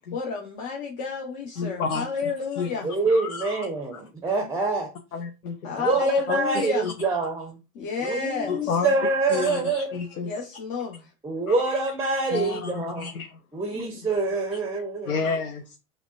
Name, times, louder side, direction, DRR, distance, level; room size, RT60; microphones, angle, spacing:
voice 1, 0.1-2.9 5.6-6.9 7.7-8.8 10.2-11.1 13.7-14.0, left 5 dB, 50° left, 0.9 m, -31 dB
voice 2, 1.6-2.1 2.6-2.7 3.1-3.6 5.1-5.6 6.3-6.9 8.5-8.9 9.3-10.3 12.3-13.4 15.1-15.8, left 5 dB, 85° left, 0.7 m, -30 dB
voice 3, 2.8-4.9 5.8-7.6 8.0-10.0 11.2-13.1 13.5-15.1, right 3 dB, 5° right, 0.6 m, -26 dB
5.8 x 2.2 x 2.3 m
hypercardioid pair, 90°, 42 cm